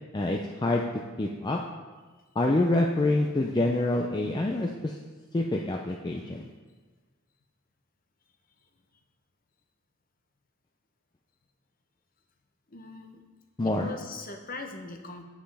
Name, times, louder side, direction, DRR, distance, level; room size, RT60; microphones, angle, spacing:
voice 1, 0.1-0.8 1.2-1.6 2.4-5.0 5.3-6.5 13.6-13.9, left 2 dB, 20° left, 0 dB, 0.4 m, -26 dB
voice 2, 12.7-13.2 13.6-15.2, left 3 dB, 40° left, 4 dB, 0.7 m, -41 dB
9.0 x 7.4 x 3.4 m, 1.4 s
head